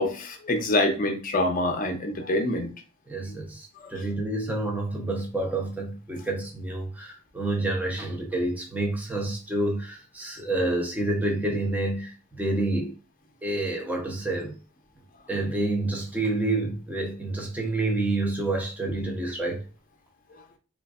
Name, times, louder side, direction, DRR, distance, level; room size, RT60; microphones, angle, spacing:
voice 1, 0.0-2.7, left 1 dB, 40° left, 0.6 m, -25 dB
voice 2, 3.1-12.9 13.4-14.6 15.3-19.6, right 2 dB, 10° right, 0.7 m, -28 dB
3.7 x 2.5 x 2.4 m
head